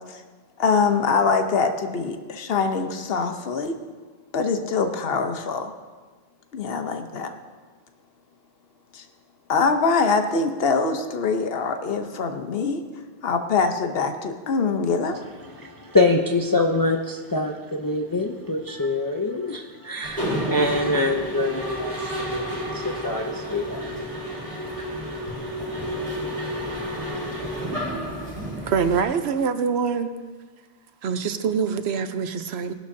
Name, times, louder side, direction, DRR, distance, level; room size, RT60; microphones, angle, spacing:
voice 1, 0.6-3.8 4.3-5.7 6.5-7.3 8.9-9.0 9.5-12.8 13.2-15.2, left 4 dB, 70° left, 7 dB, 1.1 m, -23 dB
voice 2, 15.5-23.9, left 2 dB, 25° left, 2 dB, 0.5 m, -25 dB
Mechanisms, 20.0-29.0, equal, 40° right, 3.8 m, -30 dB
voice 3, 28.7-30.1 31.0-32.7, right 6 dB, 90° right, 10 dB, 1.0 m, -24 dB
18.0 x 11.5 x 2.7 m, 1.4 s
omnidirectional pair, 1.1 m